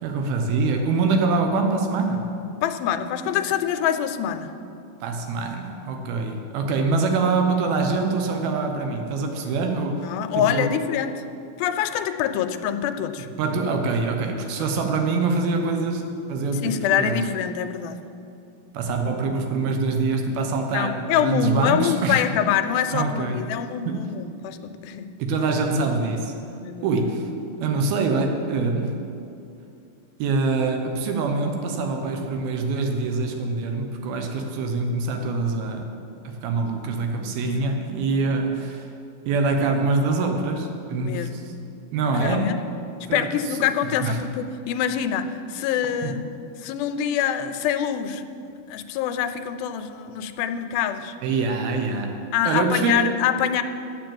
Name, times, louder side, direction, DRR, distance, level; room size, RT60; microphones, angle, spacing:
voice 1, 0.0-2.4 5.0-10.7 13.4-16.0 16.3-17.2 18.7-22.3 22.9-23.4 23.9-24.0 25.2-26.3 26.8-27.3 27.6-29.1 30.2-35.9 36.2-38.9 39.3-41.4 41.9-42.6 43.1-43.3 43.8-44.2 46.0-46.1 51.2-53.1, right 3 dB, 90° right, 4 dB, 2.9 m, -24 dB
voice 2, 2.6-4.5 10.0-11.2 11.6-13.3 14.6-14.7 16.5-18.0 20.7-25.1 26.6-27.1 37.6-37.7 41.0-41.4 42.1-42.6 43.1-46.2 46.6-48.3 48.7-51.2 52.3-53.6, left 9 dB, 85° left, 10 dB, 2.4 m, -25 dB
9.7 x 7.7 x 7.7 m, 2.6 s
omnidirectional pair, 4.2 m